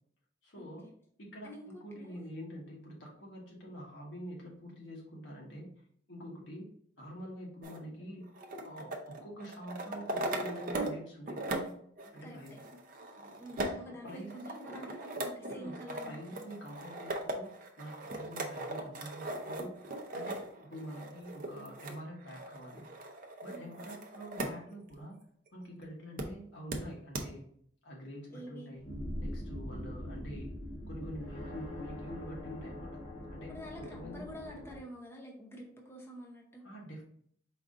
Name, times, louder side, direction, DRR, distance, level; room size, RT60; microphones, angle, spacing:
voice 1, 0.4-0.9 1.2-5.7 6.1-6.7 7.0-8.3 8.6-11.4 12.1-12.6 14.0-14.5 15.5-19.8 20.1-22.9 23.4-25.2 25.5-27.4 27.8-28.9 29.2-30.6 30.9-33.0 33.3-34.2 36.6-37.0, equal, 80° left, -2 dB, 1.3 m, -46 dB
voice 2, 1.4-2.2 12.2-12.6 13.4-16.4 23.5-23.8 28.3-28.7 33.5-36.6, equal, 15° left, -1 dB, 0.6 m, -48 dB
sound 1, 7.6-11.0 11.3-24.6 24.9-25.0 26.2-26.3 26.7-26.8 27.1-27.2, right 2 dB, 50° right, 0.6 m, -39 dB
sound 2, 28.8-34.8, left 1 dB, 55° left, 1.6 m, -42 dB
4.7 x 2.5 x 3.6 m, 0.63 s
head